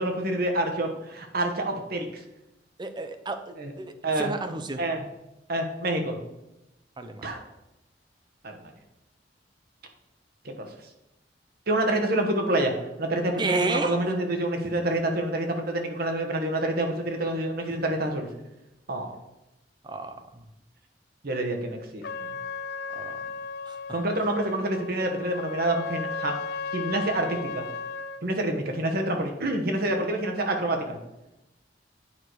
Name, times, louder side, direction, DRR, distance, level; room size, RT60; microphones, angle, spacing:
voice 1, 0.0-2.1 3.6-3.7 4.0-4.3 4.8-5.0 5.5-6.2 7.2-7.4 8.4-8.6 10.6-10.7 11.7-12.7 13.0-18.3 18.9-19.1 21.2-22.3 23.9-26.3 26.7-27.6 28.2-31.0, right 1 dB, 60° right, 4 dB, 1.2 m, -27 dB
voice 2, 2.8-4.8 7.0-7.3 13.4-14.0 19.8-20.5 22.9-23.2 23.7-23.8, right 3 dB, 25° right, 8 dB, 0.7 m, -31 dB
Trumpet, 22.0-28.2, left 4 dB, 65° left, 0.4 m, -35 dB
9.0 x 4.8 x 4.6 m, 0.93 s
head